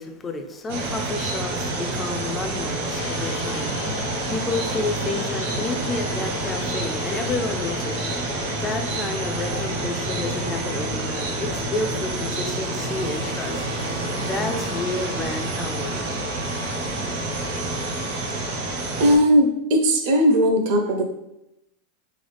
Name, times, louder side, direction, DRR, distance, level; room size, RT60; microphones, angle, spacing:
voice 1, 0.0-8.0 8.6-13.7 14.2-16.0, left 3 dB, 10° left, 5 dB, 0.4 m, -31 dB
sound 1, 0.7-19.2, right 2 dB, 60° right, 1.1 m, -28 dB
sound 2, 2.9-14.8, left 6 dB, 65° left, 0.7 m, -37 dB
sound 3, 12.1-18.4, left 2 dB, 90° right, 1.1 m, -42 dB
voice 2, 19.0-21.0, equal, 45° right, 4 dB, 0.7 m, -18 dB
4.0 x 3.9 x 3.3 m, 0.87 s
supercardioid pair, 175°, 0 cm